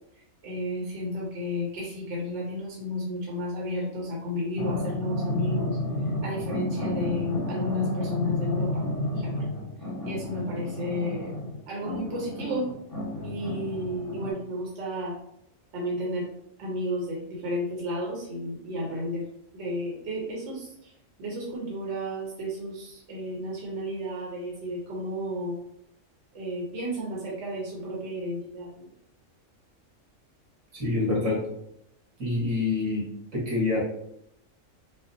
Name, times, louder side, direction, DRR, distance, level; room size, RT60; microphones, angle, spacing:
voice 1, 0.4-5.8 6.2-8.8 9.2-9.3 10.0-11.3 11.7-12.7 13.2-15.2 15.7-16.3 16.6-19.2 19.5-20.9 21.2-25.6 26.3-28.9, left 1 dB, 60° right, -4 dB, 1.3 m, -32 dB
sound 1, 4.6-14.3, left 1 dB, 45° left, 1.1 m, -31 dB
voice 2, 30.7-31.4 32.2-33.0 33.3-33.8, left 3 dB, 85° right, -6 dB, 2.1 m, -26 dB
5.8 x 2.0 x 2.7 m, 0.77 s
omnidirectional pair, 1.4 m